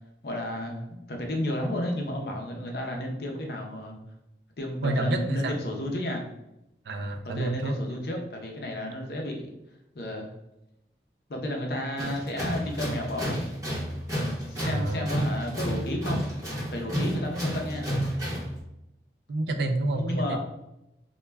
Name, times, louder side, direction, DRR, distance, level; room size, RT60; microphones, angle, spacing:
voice 1, 0.2-4.0 4.6-6.2 7.2-9.5 10.0-10.3 11.3-13.4 14.2-16.2 16.7-17.9 19.9-20.4, left 1 dB, 60° left, 1 dB, 0.5 m, -32 dB
voice 2, 4.8-5.5 6.9-7.8 14.6-15.1 19.3-20.4, right 2 dB, 70° right, 7 dB, 0.3 m, -28 dB
Tools, 12.0-18.6, equal, 20° right, 0.8 m, -31 dB
2.2 x 2.1 x 3.3 m, 0.87 s
head